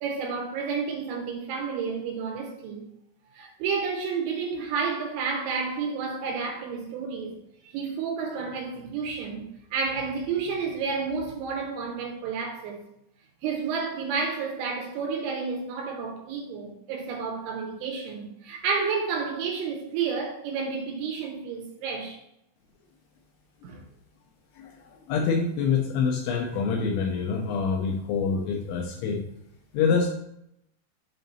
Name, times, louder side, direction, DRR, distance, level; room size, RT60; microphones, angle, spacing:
voice 1, 0.0-2.9 3.3-7.4 7.7-12.8 13.4-22.2 23.6-23.8, right 5 dB, 80° right, 3.4 m, -31 dB
voice 2, 24.6-29.2 29.7-30.1, left 5 dB, 80° left, 2.9 m, -26 dB
7.6 x 2.9 x 5.2 m
omnidirectional pair, 5.4 m